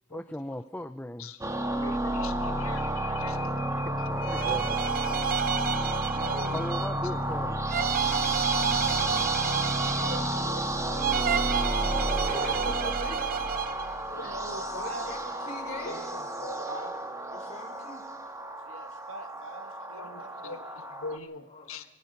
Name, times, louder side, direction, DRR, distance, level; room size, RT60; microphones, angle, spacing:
voice 1, 0.1-1.3 1.7-2.1 3.1-3.3 4.1-4.8 6.2-7.6, left 1 dB, 10° left, 0.6 m, -38 dB
voice 2, 1.2-5.3 6.4-6.5 7.0-7.1 10.0-10.2 13.6-14.5 15.8-16.7 19.9-21.8, left 4 dB, 80° left, 1.5 m, -43 dB
sound 1, 1.4-21.2, right 1 dB, 15° right, 1.7 m, -31 dB
sound 2, 4.2-7.1 7.7-10.5 11.0-13.9, right 8 dB, 45° right, 0.8 m, -30 dB
voice 3, 6.1-6.6 9.8-11.6 14.2-15.1 16.7-16.9 18.7-20.6, right 2 dB, 75° right, 2.7 m, -43 dB
voice 4, 12.2-13.2 14.7-16.0 17.3-18.0 21.5-21.7, left 1 dB, 35° left, 6.0 m, -41 dB
25.5 x 21.5 x 5.4 m
head